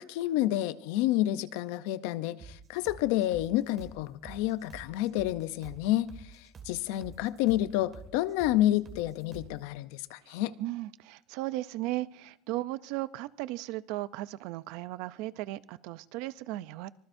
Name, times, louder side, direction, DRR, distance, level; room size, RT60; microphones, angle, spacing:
voice 1, 0.0-10.5, left 14 dB, 85° left, 0.6 m, -29 dB
sound 1, 2.4-9.6, right 5 dB, 25° right, 2.1 m, -49 dB
voice 2, 10.3-16.9, right 17 dB, 65° right, 0.5 m, -36 dB
25.0 x 19.5 x 2.7 m
cardioid pair, 180°, 0 cm